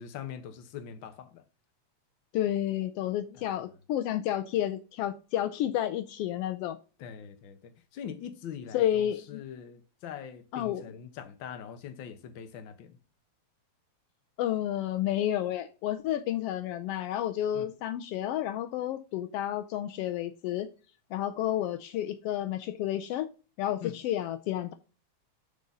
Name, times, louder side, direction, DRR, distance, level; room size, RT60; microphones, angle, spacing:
voice 1, 0.0-1.4 3.3-3.5 7.0-13.0 17.5-17.7 23.8-24.0, left 8 dB, 65° left, 1.2 m, -43 dB
voice 2, 2.3-6.8 8.7-9.4 10.5-10.8 14.4-20.7 21.1-23.3 23.6-24.7, left 12 dB, 90° left, 1.3 m, -31 dB
8.4 x 4.0 x 5.3 m
omnidirectional pair, 3.3 m